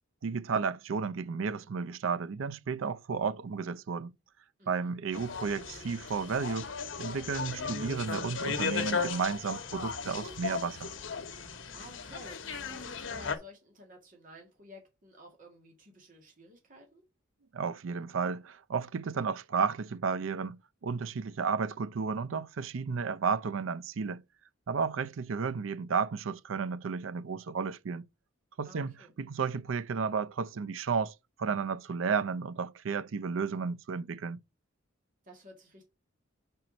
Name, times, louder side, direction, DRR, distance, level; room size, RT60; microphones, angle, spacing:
voice 1, 0.2-4.1 4.7-6.7 7.0-10.9 17.5-24.2 24.7-28.1 28.6-34.4, right 5 dB, 80° right, 0.5 m, -33 dB
voice 2, 4.6-4.9 11.7-12.4 12.7-17.0 28.6-29.1 35.2-35.9, equal, 45° right, 2.0 m, -53 dB
sound 1, 5.1-13.4, left 5 dB, 70° left, 1.0 m, -36 dB
5.3 x 4.5 x 5.0 m
head